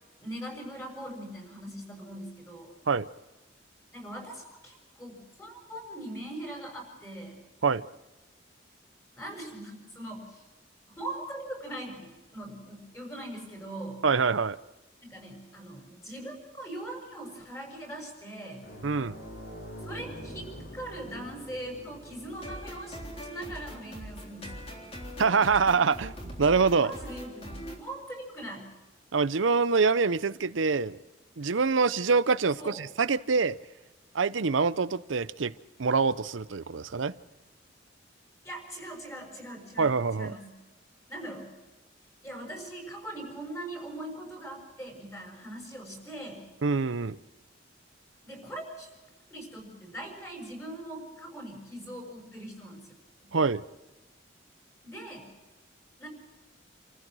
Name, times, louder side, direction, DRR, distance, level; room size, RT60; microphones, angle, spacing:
voice 1, 0.2-2.7 3.9-7.4 9.2-10.4 10.9-14.0 15.1-18.7 19.8-20.5 20.7-24.7 26.8-28.7 32.6-32.8 38.4-40.5 41.1-41.5 42.2-46.4 48.2-48.9 49.3-52.9 53.2-53.3 54.8-55.3 56.0-56.1, right 1 dB, 15° left, 6.1 m, -41 dB
voice 2, 14.0-14.6 18.8-19.2 25.2-26.9 29.1-31.0 31.4-33.6 34.1-35.5 35.8-37.1 39.8-40.3 46.6-47.2 53.3-53.6, right 4 dB, 75° right, 0.7 m, -25 dB
sound 1, 18.6-27.6 27.9-28.1 30.1-30.2, equal, 60° left, 5.0 m, -47 dB
sound 2, 22.3-27.8, equal, 30° left, 3.6 m, -42 dB
28.0 x 15.0 x 6.3 m
head